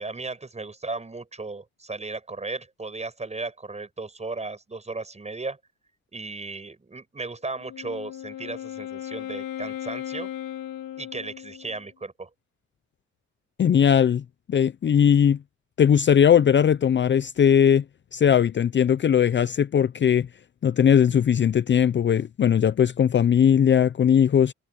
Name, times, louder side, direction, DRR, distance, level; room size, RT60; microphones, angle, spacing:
voice 1, 0.0-5.6 6.1-10.3 11.0-12.3, right 3 dB, 20° right, 7.2 m, -35 dB
Wind instrument woodwind instrument, 7.5-11.8, left 11 dB, 85° left, 1.9 m, -36 dB
voice 2, 13.6-14.2 14.5-15.4 15.8-17.8 18.1-20.3 20.6-24.5, left 8 dB, 40° left, 0.6 m, -19 dB
cardioid pair, 90°, 30 cm